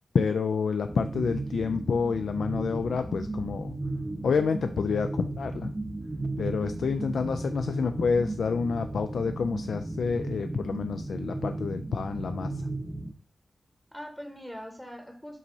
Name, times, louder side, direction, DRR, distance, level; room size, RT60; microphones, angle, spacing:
voice 1, 0.1-3.7 4.2-5.7 6.4-12.7, left 5 dB, 85° left, 8 dB, 0.3 m, -28 dB
sound 1, 0.9-13.1, right 2 dB, 20° right, 0.7 m, -35 dB
voice 2, 6.6-7.1 13.9-15.4, equal, 5° left, 4 dB, 0.9 m, -42 dB
7.3 x 2.7 x 5.3 m, 0.41 s
cardioid pair, 70°, 0 cm